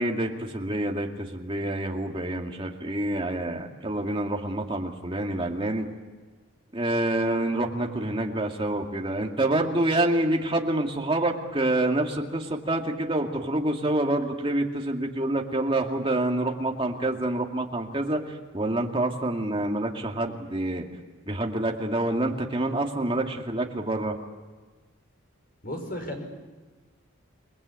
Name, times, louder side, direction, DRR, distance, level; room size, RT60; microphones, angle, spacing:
voice 1, 0.0-5.9 6.7-20.9 21.3-24.2, right 1 dB, 25° right, 2 dB, 2.3 m, -27 dB
voice 2, 25.6-26.2, left 1 dB, 45° left, 3 dB, 5.3 m, -34 dB
28.5 x 20.5 x 8.4 m, 1.3 s
head